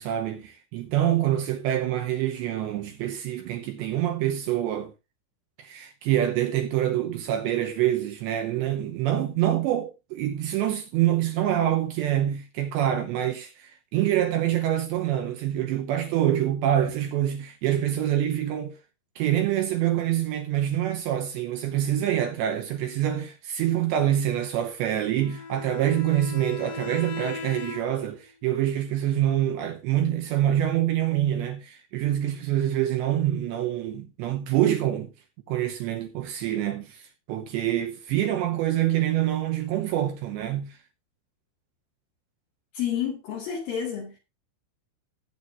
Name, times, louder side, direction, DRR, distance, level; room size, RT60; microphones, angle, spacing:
voice 1, 0.0-4.9 5.6-18.8 19.2-35.1 35.5-40.8, right 12 dB, 75° right, 2.8 m, -26 dB
Bowed string instrument, 25.2-28.2, left 5 dB, 85° left, 4.4 m, -38 dB
voice 2, 42.7-44.1, left 9 dB, 60° left, 2.9 m, -29 dB
19.0 x 8.2 x 2.6 m
omnidirectional pair, 5.9 m